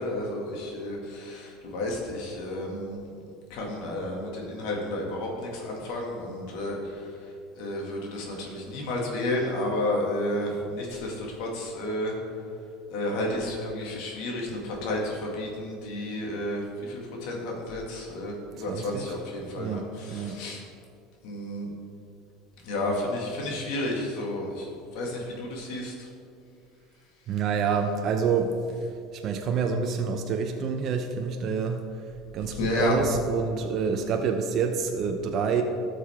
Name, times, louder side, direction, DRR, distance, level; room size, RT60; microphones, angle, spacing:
voice 1, 0.0-3.0 3.5-7.0 7.6-12.2 12.9-20.6 21.2-21.7 22.6-24.7 24.9-26.1 32.6-33.0, left 1 dB, 70° left, -1 dB, 2.2 m, -31 dB
voice 2, 18.6-19.1 19.6-20.4 27.3-28.9 29.1-31.8 32.3-35.6, right 6 dB, 50° right, 4 dB, 0.8 m, -28 dB
12.5 x 6.7 x 3.7 m, 2.4 s
supercardioid pair, 100°, 0 cm